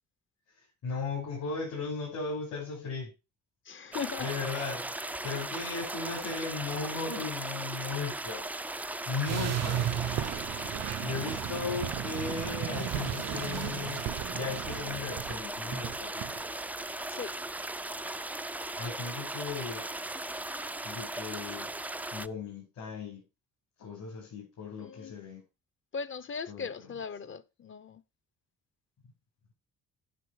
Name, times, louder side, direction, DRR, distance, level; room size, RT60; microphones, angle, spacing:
voice 1, 0.6-3.1 4.2-4.9 5.2-8.4 9.1-9.8 10.6-14.0 14.3-16.4 18.8-19.9 20.8-21.7 22.1-23.2 23.8-25.4 26.5-26.7, left 4 dB, 70° left, 6.0 m, -37 dB
voice 2, 3.6-4.3 5.3-5.4 17.1-17.3 24.8-25.1 25.9-28.0, left 6 dB, 40° left, 0.9 m, -39 dB
sound 1, 3.9-22.3, right 1 dB, 5° right, 0.4 m, -37 dB
sound 2, 9.3-16.6, right 12 dB, 60° right, 0.5 m, -36 dB
sound 3, 9.6-9.8 10.1-15.4 15.7-16.4, right 12 dB, 90° right, 0.9 m, -39 dB
10.5 x 5.6 x 4.8 m
cardioid pair, 90°, 30 cm